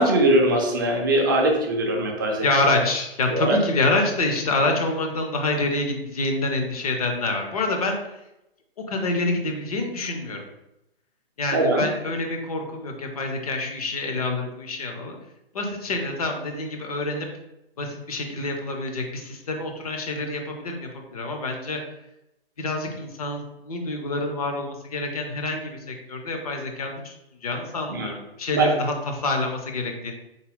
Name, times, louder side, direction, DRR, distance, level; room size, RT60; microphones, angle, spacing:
voice 1, 0.0-2.5 3.3-3.6 11.5-11.9 27.9-28.1 28.5-28.7, right 1 dB, 20° right, 1 dB, 0.4 m, -21 dB
voice 2, 2.4-8.0 8.9-10.4 11.4-15.1 15.5-17.3 17.8-21.8 22.6-27.1 27.4-30.1, left 2 dB, 40° left, 3 dB, 0.5 m, -27 dB
3.6 x 2.1 x 3.5 m, 0.90 s
figure-of-eight pair, 130°, 30 cm